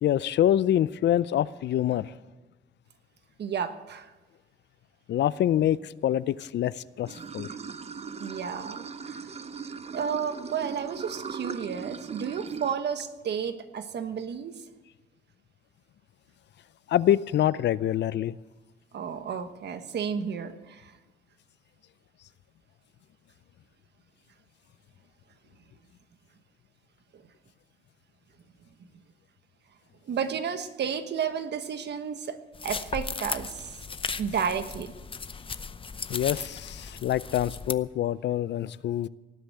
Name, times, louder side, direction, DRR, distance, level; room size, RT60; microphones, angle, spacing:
voice 1, 0.0-2.1 5.1-7.5 16.9-18.3 36.1-39.1, left 11 dB, 60° left, 19 dB, 0.5 m, -25 dB
voice 2, 3.4-4.1 8.2-9.3 9.9-14.5 18.9-20.9 27.1-27.2 30.1-32.4 32.6-33.7 34.2-34.9, right 7 dB, 60° right, 9 dB, 1.3 m, -32 dB
Water / Sink (filling or washing), 7.1-12.7, right 5 dB, 30° right, 0.7 m, -39 dB
sound 1, 32.5-37.7, left 5 dB, 25° left, 0.7 m, -36 dB
18.5 x 8.1 x 7.8 m, 1.2 s
cardioid pair, 90°, 20 cm